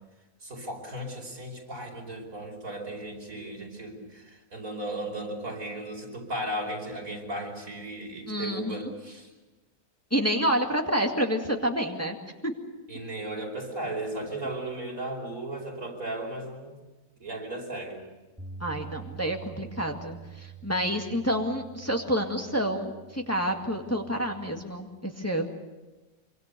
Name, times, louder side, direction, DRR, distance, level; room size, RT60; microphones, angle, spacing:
voice 1, 0.4-9.3 12.9-16.8 17.2-18.0, right 1 dB, 85° right, 1 dB, 5.5 m, -36 dB
voice 2, 8.3-8.8 10.1-12.2 12.4-12.5 18.6-25.5, equal, 10° left, 2 dB, 2.0 m, -28 dB
Bass guitar, 18.4-24.6, right 8 dB, 5° right, 3.6 m, -46 dB
25.5 x 25.0 x 6.8 m, 1.2 s
omnidirectional pair, 1.4 m